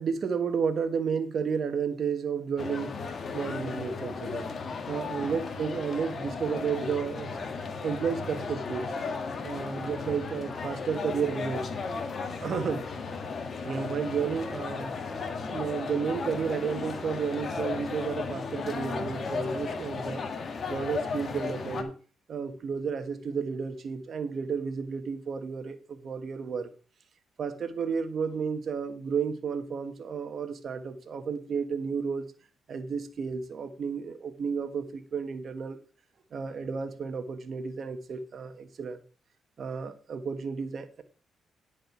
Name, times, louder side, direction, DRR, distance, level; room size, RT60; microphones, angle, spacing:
voice 1, 0.0-3.0 3.3-4.5 4.9-7.5 7.8-8.9 9.4-11.7 12.4-12.9 13.6-14.9 15.5-20.3 20.7-21.9 22.3-26.7 27.4-32.3 32.7-35.8 36.3-39.0 39.6-41.0, right 6 dB, 60° right, 1.4 m, -32 dB
sound 1, 2.6-21.8, left 4 dB, 50° left, 1.6 m, -35 dB
10.5 x 5.0 x 5.9 m
cardioid pair, 70°, 0 cm